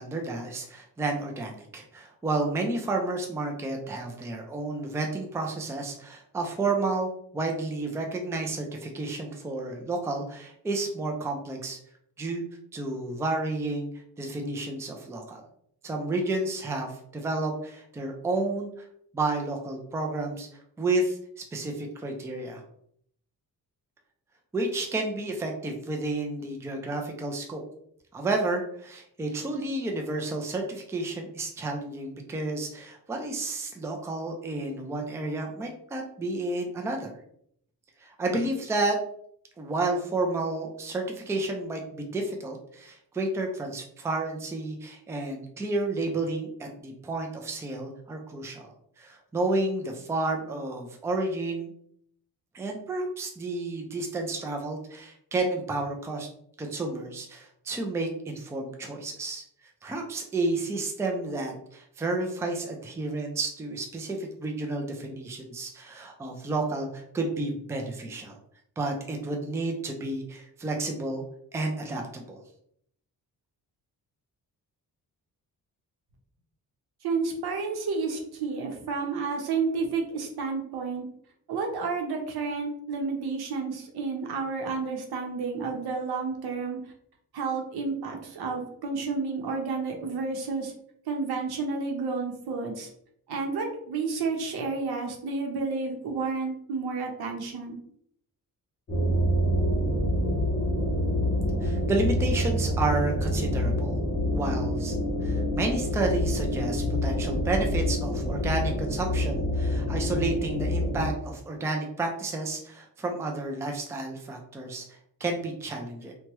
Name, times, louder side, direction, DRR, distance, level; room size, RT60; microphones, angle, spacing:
voice 1, 0.0-11.8 12.2-12.4 12.7-13.9 14.2-15.4 15.8-18.9 19.1-20.5 20.8-22.6 24.5-27.6 28.1-37.1 38.0-39.0 39.6-51.7 52.5-56.3 56.6-59.4 59.8-68.4 68.8-71.2 71.5-72.4 101.6-104.0 104.3-105.0 105.2-116.1, right 2 dB, 10° right, 2 dB, 0.3 m, -31 dB
voice 2, 77.0-81.0 81.5-86.8 87.3-90.7 91.1-92.9 93.3-97.8, right 4 dB, 85° right, 2 dB, 0.8 m, -31 dB
sound 1, 98.9-111.1, equal, 30° left, 0.7 m, -27 dB
2.9 x 2.2 x 2.9 m, 0.68 s
wide cardioid pair, 145°, 37 cm